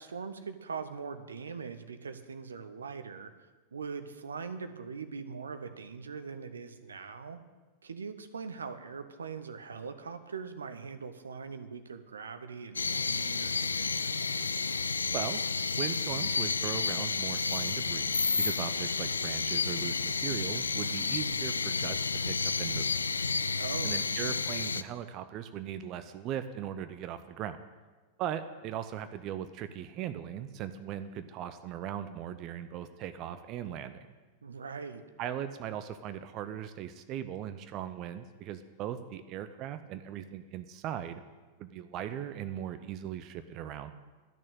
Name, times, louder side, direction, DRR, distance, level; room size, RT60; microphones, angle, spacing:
voice 1, 0.0-3.3 3.7-7.4 7.8-14.2 23.6-24.0 34.4-35.0, right 5 dB, 70° right, 10 dB, 0.7 m, -41 dB
sound 1, 12.8-24.8, left 4 dB, 75° left, 0.3 m, -31 dB
voice 2, 15.8-22.9 23.8-27.6 28.2-34.1 35.2-41.2 41.6-43.9, right 10 dB, 40° right, 10 dB, 0.6 m, -39 dB
12.0 x 6.4 x 9.0 m, 1.3 s
figure-of-eight pair, 90°, 0 cm